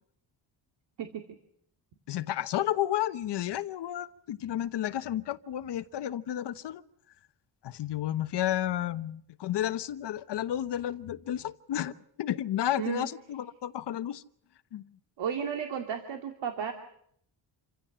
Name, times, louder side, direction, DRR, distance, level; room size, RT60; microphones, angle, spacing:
voice 1, 1.0-1.4 12.8-13.1 15.2-16.7, right 8 dB, 85° right, 5 dB, 2.5 m, -34 dB
voice 2, 2.1-6.8 7.6-11.9 12.2-14.2 14.7-14.8, left 12 dB, 70° left, 12 dB, 1.1 m, -32 dB
28.0 x 16.0 x 8.8 m, 0.68 s
wide cardioid pair, 175°, 42 cm